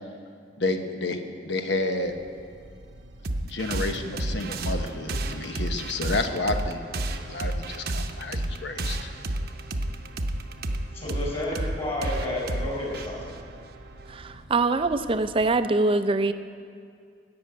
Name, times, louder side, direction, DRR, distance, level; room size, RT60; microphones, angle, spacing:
voice 1, 0.6-1.2 1.4-2.2 3.4-9.1, left 2 dB, 75° left, 6 dB, 1.0 m, -30 dB
sound 1, 2.0-15.7, right 1 dB, 90° right, 1.0 m, -48 dB
sound 2, 3.2-14.3, right 1 dB, 60° right, 0.8 m, -31 dB
voice 2, 10.9-13.2, left 1 dB, 35° left, -3 dB, 4.2 m, -31 dB
voice 3, 14.1-16.3, right 3 dB, 30° right, 11 dB, 0.5 m, -24 dB
16.5 x 6.3 x 8.6 m, 2.3 s
head